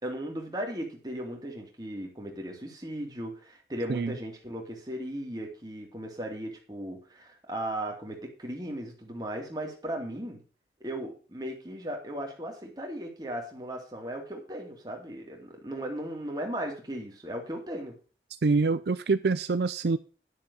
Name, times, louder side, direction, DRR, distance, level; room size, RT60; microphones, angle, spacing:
voice 1, 0.0-10.4 10.8-17.9, right 1 dB, 20° right, 1 dB, 2.5 m, -37 dB
voice 2, 18.4-20.0, right 4 dB, 70° right, 12 dB, 0.5 m, -25 dB
11.0 x 6.7 x 5.4 m, 0.36 s
head